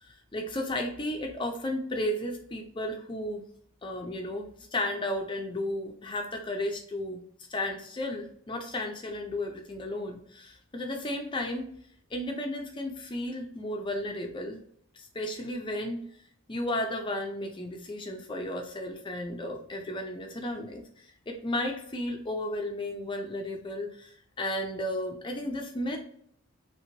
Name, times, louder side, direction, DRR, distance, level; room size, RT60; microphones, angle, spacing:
voice 1, 0.0-3.4 3.8-7.2 7.5-11.7 12.1-14.6 15.0-16.1 16.5-24.1 24.4-26.0, left 1 dB, 20° left, 3 dB, 0.4 m, -34 dB
3.0 x 2.9 x 2.7 m, 0.64 s
head